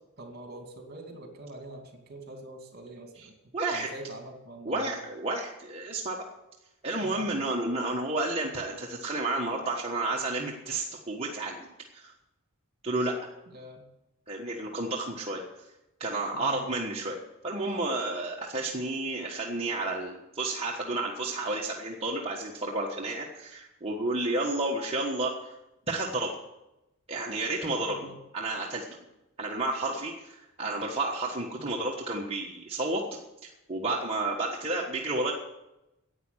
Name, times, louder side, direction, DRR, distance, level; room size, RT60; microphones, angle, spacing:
voice 1, 0.2-3.3 3.7-5.0 7.0-7.3 13.5-13.8 16.3-16.6 27.9-28.2 31.6-31.7, right 1 dB, 45° right, 4 dB, 2.5 m, -44 dB
voice 2, 3.5-3.9 4.6-6.2 6.8-11.7 11.9-12.1 12.8-13.1 14.3-15.4 16.0-25.5 25.9-26.3 27.1-28.9 29.4-33.0 33.4-35.3, right 2 dB, 25° right, -2 dB, 1.4 m, -31 dB
11.0 x 8.6 x 9.8 m, 0.94 s
head